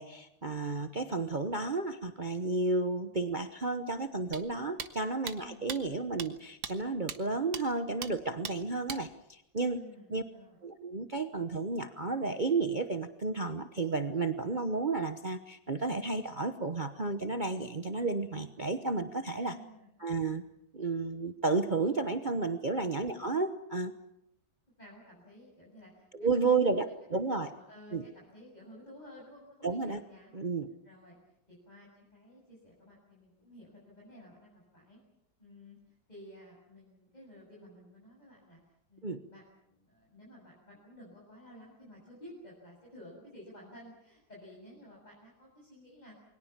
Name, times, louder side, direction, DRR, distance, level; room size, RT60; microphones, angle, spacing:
voice 1, 0.0-9.8 10.1-10.2 10.6-19.6 20.0-20.4 20.7-23.9 26.1-27.5 27.9-28.0 29.6-30.0 30.3-30.7 39.0-39.2, right 3 dB, 30° right, 8 dB, 1.0 m, -32 dB
sound 1, 4.3-4.4 4.8-4.9 5.3-5.4 5.7-5.8 6.2-6.3 6.6-6.7 7.1-7.2 7.5-7.6 8.0-8.1 8.4-8.6 8.9-9.0, right 7 dB, 90° right, 2.2 m, -38 dB
voice 2, 9.7-10.6 19.2-19.9 24.8-26.8 27.1-30.4 30.8-35.0 35.4-38.6 38.9-46.1, equal, 20° left, -4 dB, 7.9 m, -53 dB
29.0 x 23.0 x 7.4 m, 0.80 s
omnidirectional pair, 2.1 m